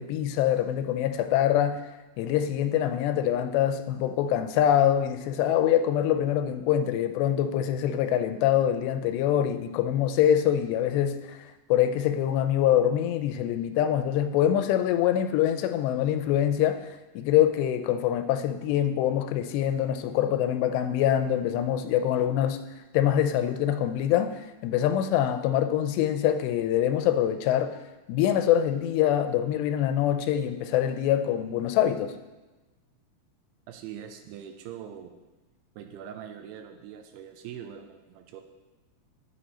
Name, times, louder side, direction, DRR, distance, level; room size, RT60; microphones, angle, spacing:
voice 1, 0.0-1.8 2.2-22.6 22.9-27.8 28.1-32.2, left 10 dB, 85° left, 9 dB, 2.8 m, -24 dB
voice 2, 33.7-35.1 35.8-38.4, right 9 dB, 80° right, 5 dB, 2.6 m, -42 dB
11.0 x 6.6 x 4.2 m, 1.1 s
omnidirectional pair, 4.9 m